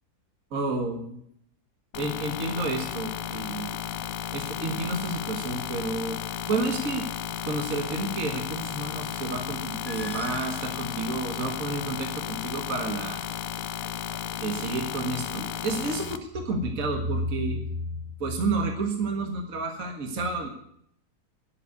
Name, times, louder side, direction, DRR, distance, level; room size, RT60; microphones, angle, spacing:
voice 1, 0.5-1.2 2.0-3.7 4.3-6.2 6.5-7.1 7.5-13.2 14.4-17.9 18.2-20.5, right 2 dB, 60° right, 3 dB, 2.0 m, -30 dB
sound 1, 1.9-16.2, left 11 dB, 70° left, 1.1 m, -34 dB
sound 2, 9.7-11.9, left 4 dB, 40° left, 0.8 m, -44 dB
11.0 x 8.4 x 9.4 m, 0.70 s
omnidirectional pair, 1.7 m